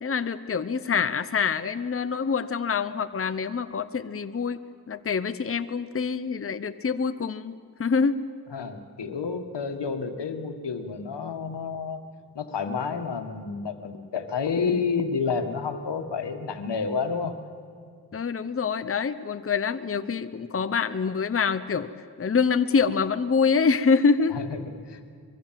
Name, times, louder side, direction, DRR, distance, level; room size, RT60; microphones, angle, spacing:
voice 1, 0.0-4.6 4.9-8.2 18.1-21.9 22.2-24.4, left 5 dB, 35° left, 11 dB, 0.9 m, -25 dB
voice 2, 8.5-12.0 12.4-17.4 24.3-25.0, left 5 dB, 85° left, 6 dB, 1.9 m, -30 dB
24.0 x 22.5 x 7.6 m, 2.2 s
cardioid pair, 75°, 40 cm